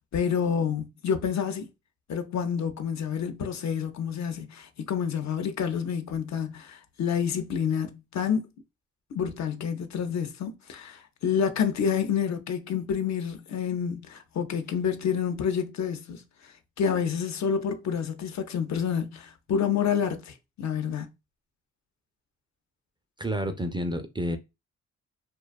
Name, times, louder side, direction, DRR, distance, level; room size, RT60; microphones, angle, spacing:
voice 1, 0.0-1.7 2.1-8.4 9.1-21.1, left 7 dB, 60° left, 0.5 m, -28 dB
voice 2, 23.2-24.4, equal, 15° right, 0.3 m, -29 dB
2.5 x 2.2 x 2.2 m
cardioid pair, 75°, 31 cm